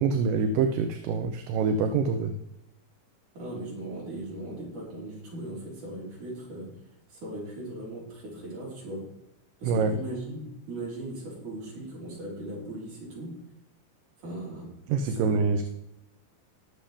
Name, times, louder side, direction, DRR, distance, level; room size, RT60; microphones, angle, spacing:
voice 1, 0.0-2.3 9.6-10.0 14.9-15.7, right 5 dB, 85° right, 6 dB, 2.5 m, -25 dB
voice 2, 3.4-6.7 7.1-9.0 9.6-13.3 14.2-14.7 15.2-15.4, right 1 dB, 65° right, -5 dB, 5.9 m, -38 dB
20.0 x 7.2 x 3.5 m, 0.86 s
omnidirectional pair, 3.8 m